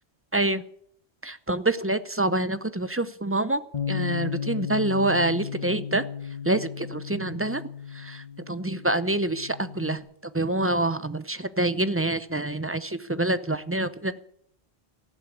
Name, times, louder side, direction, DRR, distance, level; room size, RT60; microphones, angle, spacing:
voice 1, 0.3-0.6 1.2-3.6 3.9-6.1 6.4-7.7 7.9-10.0 10.3-14.2, right 2 dB, 20° right, 14 dB, 0.4 m, -26 dB
Bass guitar, 3.7-10.0, left 7 dB, 40° left, 1.3 m, -34 dB
15.0 x 11.5 x 8.4 m, 0.69 s
omnidirectional pair, 1.1 m